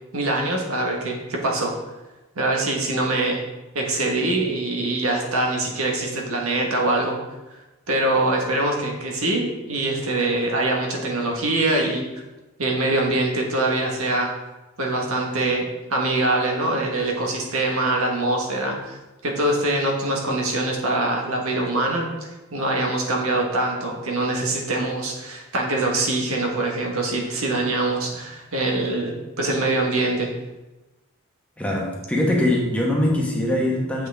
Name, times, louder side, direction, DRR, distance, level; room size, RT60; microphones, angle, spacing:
voice 1, 0.1-1.7 2.3-3.4 3.7-7.2 7.9-12.0 12.6-14.3 14.8-15.6 15.9-19.0 19.2-30.3, right 2 dB, 80° right, 0 dB, 1.4 m, -23 dB
voice 2, 31.6-34.1, left 1 dB, 5° left, -3 dB, 1.1 m, -22 dB
7.5 x 6.0 x 3.4 m, 1.1 s
head